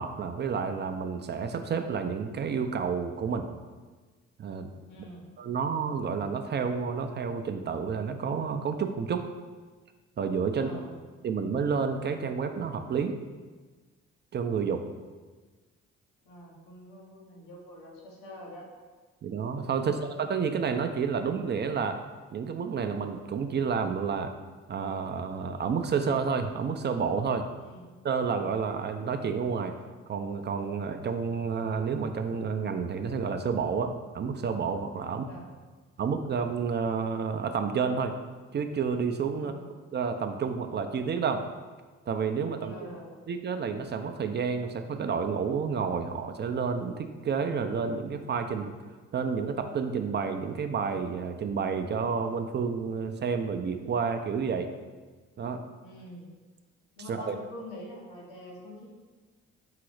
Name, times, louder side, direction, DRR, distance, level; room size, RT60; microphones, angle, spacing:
voice 1, 0.0-3.5 4.4-4.7 5.4-9.3 10.2-10.8 11.2-13.2 14.3-14.8 19.2-22.0 22.3-24.3 24.7-27.5 28.0-29.8 30.1-35.3 36.0-38.1 38.5-39.5 39.9-41.5 42.1-42.7 43.3-48.7 49.1-54.7 55.4-55.6 57.1-57.3, right 6 dB, 35° right, 7 dB, 0.4 m, -30 dB
voice 2, 4.9-5.2 10.5-11.0 16.2-18.7 27.6-27.8 35.1-35.5 39.3-39.5 42.6-43.2 55.8-56.3 57.0-58.9, equal, 85° left, -3 dB, 1.1 m, -46 dB
4.8 x 2.0 x 4.6 m, 1.4 s
supercardioid pair, 60°, 30 cm